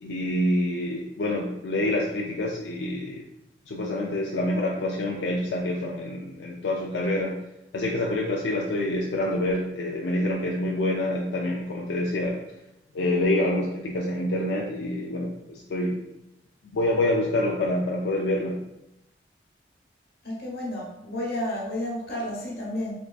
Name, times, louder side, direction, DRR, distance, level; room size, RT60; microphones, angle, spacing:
voice 1, 0.0-3.2 3.7-7.4 7.7-12.4 12.9-16.0 16.7-18.6, left 1 dB, 90° left, -2 dB, 0.4 m, -27 dB
voice 2, 20.2-22.9, left 1 dB, 65° left, -4 dB, 1.2 m, -31 dB
3.6 x 3.4 x 2.3 m, 0.86 s
head